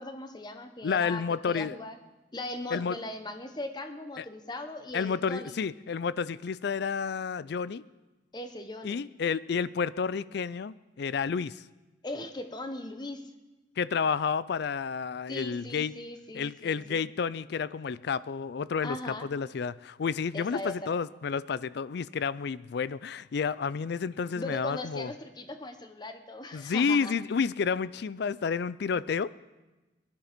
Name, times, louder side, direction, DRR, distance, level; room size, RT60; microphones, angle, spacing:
voice 1, 0.0-2.0 2.3-5.6 8.3-9.0 12.0-13.2 15.3-17.0 18.8-19.3 20.3-20.9 24.3-27.2, left 2 dB, 25° left, 7 dB, 0.9 m, -39 dB
voice 2, 0.8-1.7 2.7-3.0 4.2-4.3 4.9-7.9 8.8-11.6 13.8-15.9 16.3-25.1 26.5-29.3, left 6 dB, 60° left, 18 dB, 0.4 m, -30 dB
19.0 x 10.5 x 5.1 m, 1.1 s
head